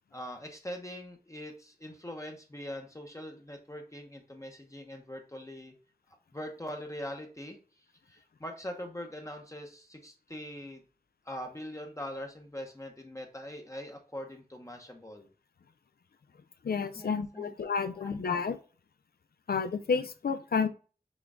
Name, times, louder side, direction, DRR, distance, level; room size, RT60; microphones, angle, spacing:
voice 1, 0.1-5.7 6.1-10.8 11.2-15.3 16.9-18.4, equal, 20° left, 0.7 m, -42 dB
voice 2, 16.6-18.6 19.5-20.7, left 5 dB, 70° left, 0.4 m, -30 dB
6.2 x 2.3 x 3.6 m
wide cardioid pair, 60°, 17 cm